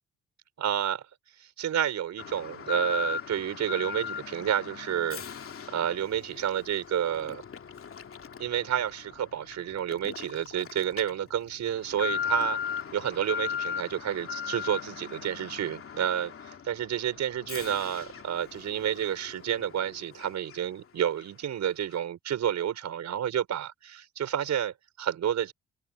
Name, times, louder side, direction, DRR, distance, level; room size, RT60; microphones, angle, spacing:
voice 1, 0.6-1.0 1.4-5.2 5.7-7.4 8.4-12.6 12.9-25.5, right 10 dB, 65° right, 5.1 m, -30 dB
Alarm, 2.2-20.8 21.2-21.3 21.9-22.0, left 7 dB, 45° left, 2.5 m, -38 dB
cardioid pair, 90°, 30 cm